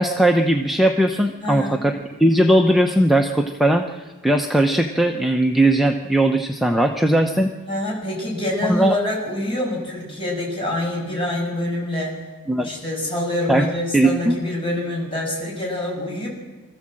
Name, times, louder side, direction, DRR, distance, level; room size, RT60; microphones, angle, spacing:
voice 1, 0.0-7.5 8.7-8.9 12.5-12.7 13.5-13.6 13.9-14.4, right 1 dB, ahead, 2 dB, 0.7 m, -18 dB
voice 2, 1.4-1.8 7.7-12.1 12.6-16.3, left 1 dB, 25° left, -3 dB, 6.7 m, -26 dB
24.5 x 14.5 x 7.6 m, 1.2 s
head